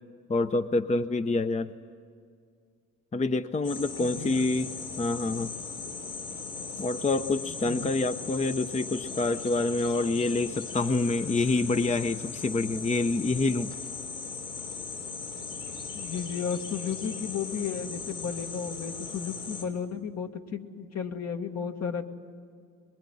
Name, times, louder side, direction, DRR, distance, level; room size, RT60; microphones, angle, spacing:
voice 1, 0.3-1.7 3.1-5.5 6.8-13.7, left 3 dB, 25° left, 10 dB, 0.7 m, -27 dB
sound 1, 3.6-19.6, left 4 dB, 80° left, 4.1 m, -38 dB
voice 2, 4.0-4.6 7.5-8.0 15.9-22.1, left 7 dB, 60° left, 4 dB, 1.9 m, -34 dB
24.0 x 21.5 x 9.8 m, 2.2 s
cardioid pair, 90°, 30 cm